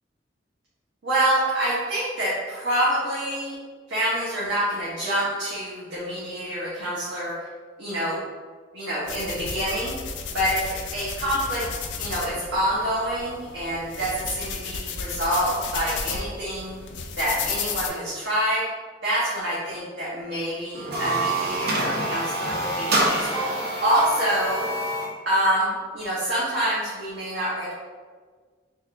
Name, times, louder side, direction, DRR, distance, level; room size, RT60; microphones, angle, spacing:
voice 1, 1.0-3.5 3.9-7.4 7.8-8.2 8.7-10.0 10.3-10.6 10.9-11.6 12.0-16.7 17.1-18.6 19.0-24.7 25.3-27.7, right 1 dB, 80° right, -9 dB, 0.9 m, -26 dB
sound 1, 9.1-17.9, left 6 dB, 85° left, 0.4 m, -33 dB
sound 2, 20.7-25.2, right 1 dB, 55° right, 0.6 m, -26 dB
3.6 x 2.4 x 3.2 m, 1.5 s
head